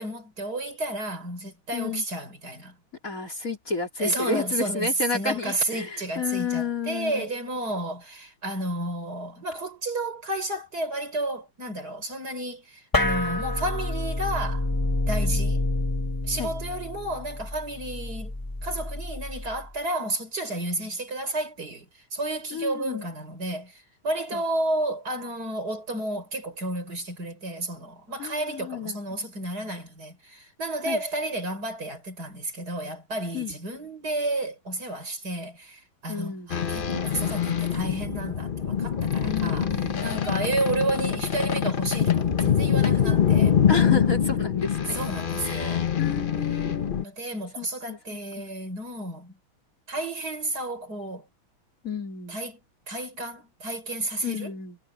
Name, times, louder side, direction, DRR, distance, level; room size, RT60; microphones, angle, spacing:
voice 1, 0.0-2.8 4.0-14.7 15.1-15.7 16.2-18.3 18.6-39.7 40.0-43.5 44.9-45.9 46.9-49.4 49.9-51.2 52.3-52.6 52.9-54.5, right 1 dB, 45° right, 6.5 m, -31 dB
voice 2, 1.7-2.0 3.0-7.3 15.2-15.4 16.4-16.5 22.5-23.1 24.3-24.4 28.2-29.3 30.9-31.0 33.3-33.5 36.1-36.5 39.2-40.1 43.7-45.0 45.4-47.0 47.6-48.6 51.8-52.4 54.2-54.8, left 5 dB, 40° left, 3.3 m, -32 dB
sound 1, 12.9-19.7, left 2 dB, 15° left, 0.9 m, -28 dB
sound 2, 36.5-47.0, left 8 dB, 55° left, 0.5 m, -24 dB
omnidirectional pair, 2.3 m